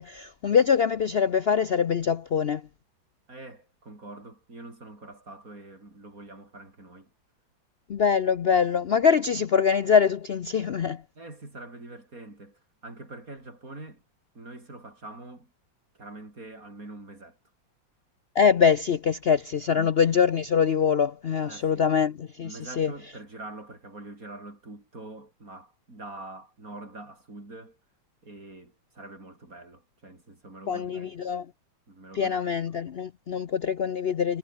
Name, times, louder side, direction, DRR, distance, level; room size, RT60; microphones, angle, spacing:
voice 1, 0.0-2.6 7.9-11.0 18.4-22.9 30.7-31.5 32.1-34.4, left 7 dB, 80° left, 0.5 m, -24 dB
voice 2, 3.3-7.1 11.2-14.0 14.3-15.5 15.9-17.4 19.7-19.9 21.4-21.8 22.4-27.8 28.2-31.1 31.9-32.4 33.3-33.4, right 2 dB, 45° right, 6.4 m, -44 dB
omnidirectional pair, 2.1 m